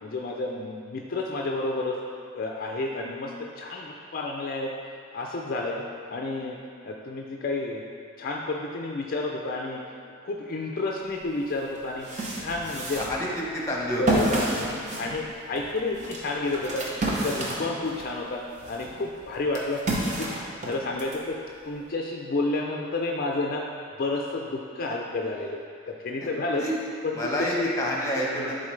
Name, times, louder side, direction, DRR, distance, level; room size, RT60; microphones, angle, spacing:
voice 1, 0.0-2.0 2.3-4.8 5.1-5.8 6.1-6.6 6.8-7.8 8.2-9.8 10.2-12.1 12.4-13.0 14.0-14.7 15.0-18.4 18.7-20.3 20.6-21.4 21.7-23.7 24.0-25.6 25.8-26.6 27.0-27.7 28.3-28.5, left 2 dB, 45° left, 0 dB, 0.4 m, -30 dB
sound 1, 11.2-11.3 11.8-18.1 18.6-21.2, right 1 dB, 35° right, 0.9 m, -30 dB
voice 2, 12.7-13.3 13.5-14.4 26.6-26.8 27.2-28.7, equal, 15° left, -3 dB, 1.1 m, -29 dB
11.0 x 3.9 x 3.2 m, 2.4 s
head